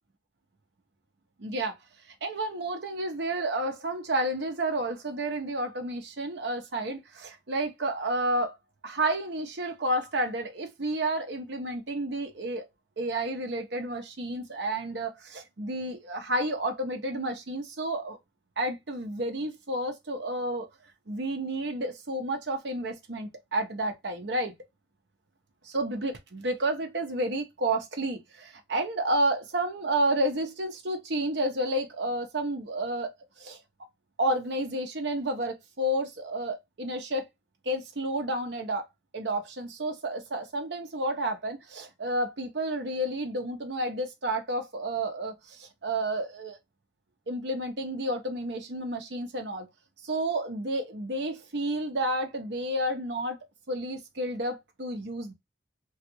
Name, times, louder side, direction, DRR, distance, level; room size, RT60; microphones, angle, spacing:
voice 1, 1.4-1.7 2.2-8.5 8.8-12.6 13.0-18.2 18.6-20.7 21.1-24.5 25.7-33.1 33.4-33.6 34.2-37.3 37.6-38.9 39.1-46.6 47.3-49.7 50.0-53.4 53.7-55.3, right 1 dB, 80° right, 0.9 m, -30 dB
3.1 x 2.5 x 2.9 m
head